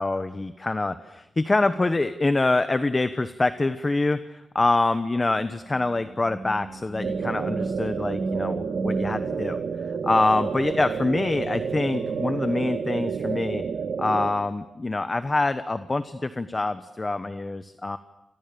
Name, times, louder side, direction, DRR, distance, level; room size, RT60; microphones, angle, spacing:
voice 1, 0.0-9.6 10.0-13.6 14.0-18.0, left 2 dB, 25° left, 11 dB, 1.1 m, -25 dB
sound 1, 5.7-9.1 11.3-12.7, right 3 dB, 25° right, 7.5 m, -35 dB
sound 2, 7.0-14.3, right 6 dB, 85° right, 2.0 m, -30 dB
29.0 x 27.0 x 7.0 m, 0.89 s
wide cardioid pair, 105°, 0 cm